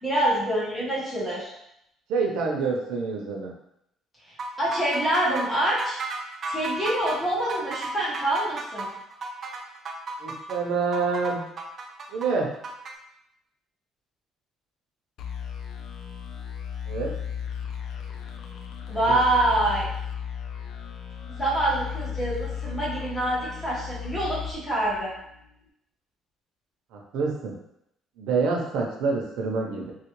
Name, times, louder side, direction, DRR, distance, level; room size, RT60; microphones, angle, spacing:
voice 1, 0.0-1.5 4.6-6.0 6.5-8.9 18.9-19.9 21.3-25.1, right 1 dB, 15° left, -8 dB, 1.3 m, -26 dB
voice 2, 2.1-3.5 10.2-11.4 12.1-12.5 16.9-17.1 18.9-19.1 26.9-27.6 28.2-29.9, right 4 dB, 85° right, 0 dB, 0.6 m, -27 dB
sound 1, 4.4-12.9, right 3 dB, 40° right, 0.4 m, -34 dB
sound 2, 15.2-25.5, left 8 dB, 60° left, 0.3 m, -35 dB
3.1 x 2.4 x 3.0 m, 0.78 s
cardioid pair, 135°, 0 cm